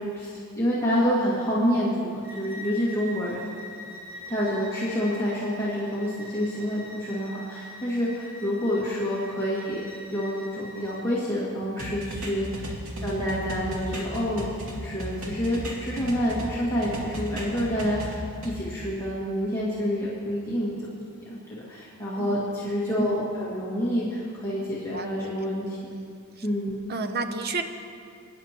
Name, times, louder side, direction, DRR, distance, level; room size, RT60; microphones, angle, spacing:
voice 1, 0.0-3.4 4.3-9.8 10.1-12.6 13.0-20.7 21.3-25.8 26.4-26.8, equal, 15° left, -9 dB, 2.1 m, -28 dB
Bowed string instrument, 2.2-11.0, left 1 dB, 15° right, 2.2 m, -43 dB
sound 1, 11.8-16.5 16.8-18.5, equal, 90° right, 2.4 m, -35 dB
voice 2, 22.2-22.5 24.9-25.0 25.9-26.2 26.9-27.6, right 3 dB, 50° right, 7 dB, 0.7 m, -31 dB
23.0 x 10.5 x 3.0 m, 2.3 s
head